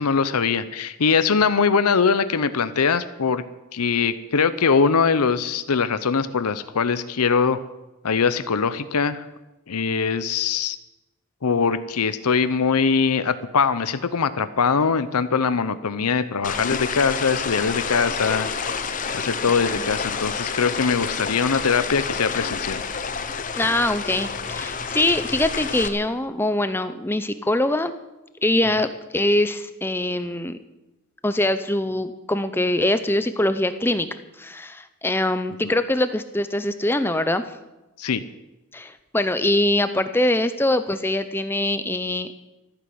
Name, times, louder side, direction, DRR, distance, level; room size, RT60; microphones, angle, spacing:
voice 1, 0.0-3.4 3.7-7.6 8.0-9.2 9.7-10.8 11.4-18.5 19.1-22.8 38.0-38.2, left 5 dB, 90° left, 13 dB, 0.7 m, -22 dB
sound 1, 16.4-25.9, left 5 dB, 35° left, 0.9 m, -29 dB
voice 2, 23.6-27.9 28.4-28.9 29.1-30.6 31.2-34.1 34.4-37.5 38.7-42.3, left 1 dB, 10° left, 11 dB, 0.6 m, -23 dB
14.5 x 9.8 x 7.8 m, 1.0 s
head